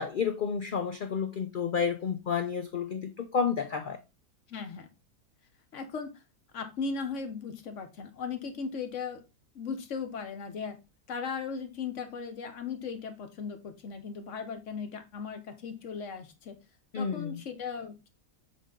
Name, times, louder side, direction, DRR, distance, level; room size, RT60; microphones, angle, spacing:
voice 1, 0.0-4.0 16.9-17.4, left 6 dB, 80° left, 7 dB, 0.4 m, -30 dB
voice 2, 4.5-4.9 5.7-6.1 6.5-9.2 9.5-10.8 11.1-16.5 16.9-18.1, left 5 dB, 55° left, 8 dB, 1.2 m, -37 dB
7.5 x 3.5 x 3.8 m, 0.27 s
omnidirectional pair, 1.6 m